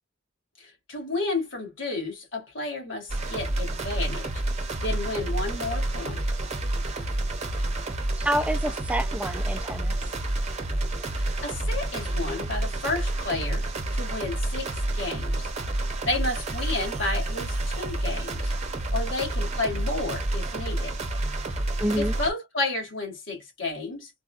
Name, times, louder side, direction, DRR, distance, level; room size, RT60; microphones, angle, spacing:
voice 1, 0.6-6.2 11.1-15.5 16.1-18.5 18.9-21.0 21.7-24.1, left 2 dB, 80° left, 2.0 m, -32 dB
sound 1, 3.1-22.3, right 1 dB, 35° right, 0.9 m, -29 dB
voice 2, 8.2-10.0 21.8-22.1, equal, 5° right, 0.4 m, -28 dB
4.0 x 2.3 x 2.4 m
head